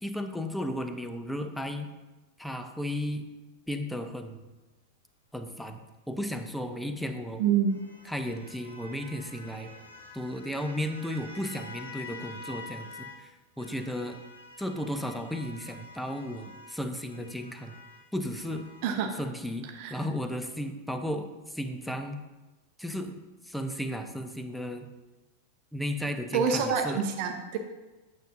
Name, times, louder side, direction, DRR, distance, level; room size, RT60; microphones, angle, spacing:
voice 1, 0.0-1.9 2.4-3.3 3.7-4.5 5.3-5.8 6.1-7.4 8.0-9.7 10.1-14.2 14.6-17.7 18.1-18.6 19.2-22.2 22.8-23.2 23.4-24.9 25.7-27.0, equal, ahead, 6 dB, 0.7 m, -34 dB
sound 1, 6.6-13.2 13.6-18.9, left 3 dB, 80° left, 1.2 m, -48 dB
voice 2, 7.4-7.8 18.8-19.1 19.7-19.9 26.3-27.6, right 6 dB, 45° right, 4 dB, 0.8 m, -26 dB
9.1 x 7.3 x 2.6 m, 1.1 s
figure-of-eight pair, 90°, 0 cm